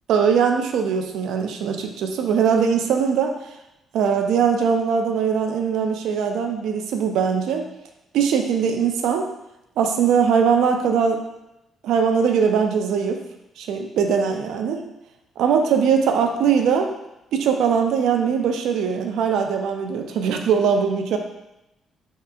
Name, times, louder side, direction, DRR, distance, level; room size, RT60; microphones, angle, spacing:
voice 1, 0.1-3.3 3.9-7.7 8.1-9.2 9.8-11.2 11.8-13.2 13.6-14.8 15.4-16.9 17.3-21.2, right 6 dB, 80° right, 4 dB, 0.3 m, -21 dB
3.2 x 2.7 x 2.3 m, 0.90 s
cardioid pair, 90°, 0 cm